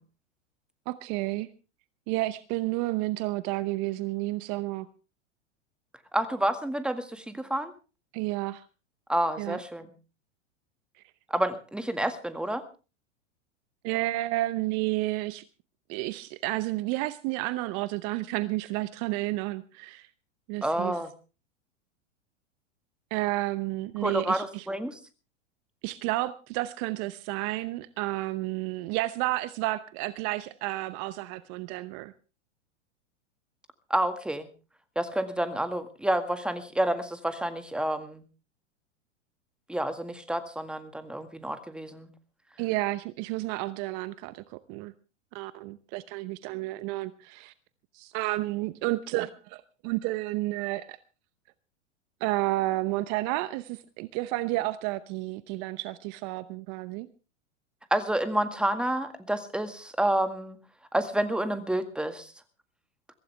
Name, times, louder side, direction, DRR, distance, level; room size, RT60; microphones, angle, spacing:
voice 1, 0.9-1.5 2.1-4.9 8.1-8.6 9.4-9.6 13.8-15.4 15.9-20.1 20.5-20.9 23.1-24.6 25.8-32.1 42.6-44.9 45.3-47.5 47.9-51.0 52.2-57.1, right 18 dB, 45° right, 15 dB, 0.9 m, -31 dB
voice 2, 6.1-7.7 9.1-9.9 11.3-12.6 20.6-21.1 24.0-25.0 33.9-34.5 35.0-38.2 39.7-42.1 57.9-60.6 60.9-62.3, right 1 dB, ahead, 9 dB, 1.8 m, -29 dB
23.0 x 15.5 x 3.4 m, 0.34 s
hypercardioid pair, 105°, 37 cm